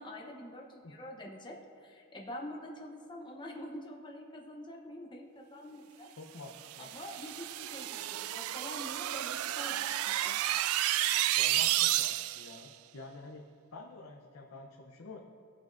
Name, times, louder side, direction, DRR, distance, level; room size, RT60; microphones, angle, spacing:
voice 1, 0.0-6.1 6.8-10.4, left 1 dB, 20° left, 0 dB, 0.8 m, -46 dB
voice 2, 6.2-6.9 11.4-15.2, left 3 dB, 75° left, 0 dB, 0.7 m, -48 dB
sound 1, 6.6-12.6, right 14 dB, 75° right, 0.3 m, -31 dB
17.5 x 6.1 x 2.5 m, 2.5 s
head